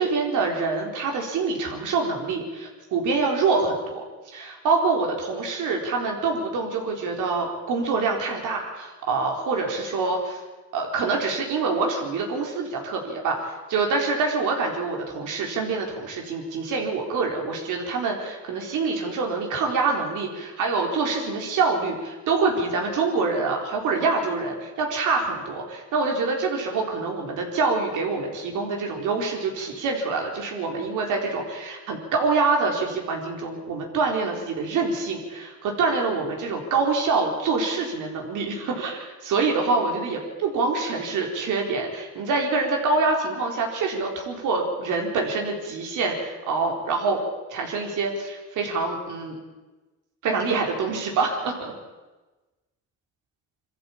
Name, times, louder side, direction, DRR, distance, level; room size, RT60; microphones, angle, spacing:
voice 1, 0.0-10.4 10.7-47.2 47.5-49.4 50.2-51.7, right 4 dB, 85° right, 1 dB, 4.2 m, -26 dB
22.5 x 14.0 x 8.7 m, 1.2 s
cardioid pair, 90°, 30 cm